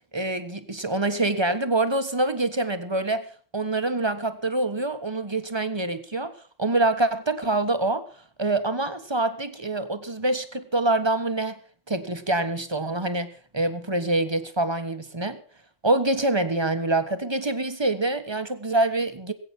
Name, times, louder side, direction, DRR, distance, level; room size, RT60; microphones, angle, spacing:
voice 1, 0.1-3.2 3.5-6.3 6.6-8.0 8.4-11.6 11.9-15.4 15.8-19.3, right 2 dB, 20° right, 9 dB, 1.3 m, -25 dB
21.0 x 9.0 x 6.0 m, 0.42 s
omnidirectional pair, 1.3 m